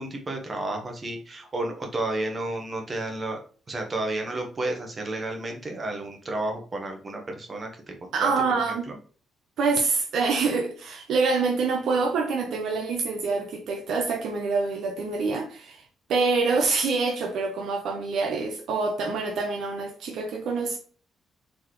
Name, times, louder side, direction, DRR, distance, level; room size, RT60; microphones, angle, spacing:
voice 1, 0.0-3.4 3.7-8.3 8.7-9.0, right 2 dB, 25° right, 0.9 m, -32 dB
voice 2, 8.1-8.9 9.6-15.8 16.1-20.8, right 4 dB, 65° right, 0.7 m, -26 dB
4.1 x 3.0 x 3.1 m
cardioid pair, 150°, 0 cm